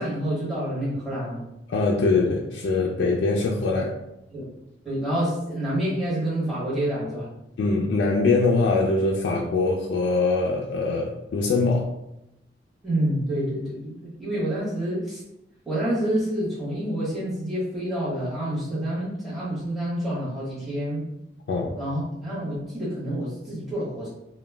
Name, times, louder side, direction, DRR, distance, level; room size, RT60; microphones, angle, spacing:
voice 1, 0.0-1.4 3.7-3.8 4.3-4.4 4.8-7.3 12.8-15.2 15.6-21.1 21.8-24.1, right 1 dB, ahead, -10 dB, 0.9 m, -28 dB
voice 2, 1.7-3.9 7.6-11.9 21.5-21.8, left 3 dB, 90° left, -2 dB, 0.3 m, -23 dB
2.1 x 2.1 x 3.2 m, 0.86 s
head